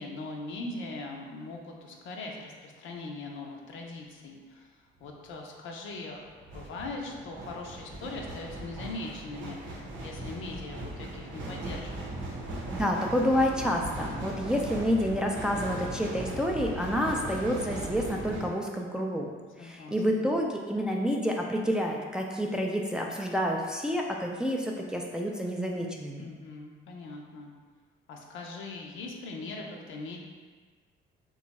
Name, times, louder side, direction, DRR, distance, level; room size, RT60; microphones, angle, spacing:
voice 1, 0.0-6.3 6.5-12.1 19.6-20.3 26.2-27.5 28.1-30.2, left 2 dB, 80° left, 0 dB, 0.6 m, -41 dB
sound 1, 5.0-5.3 6.3-18.5, right 1 dB, 75° right, 0.8 m, -38 dB
voice 2, 12.7-19.3 19.6-26.3, equal, 5° right, -1 dB, 0.4 m, -29 dB
2.9 x 2.3 x 4.0 m, 1.4 s
cardioid pair, 90°, 20 cm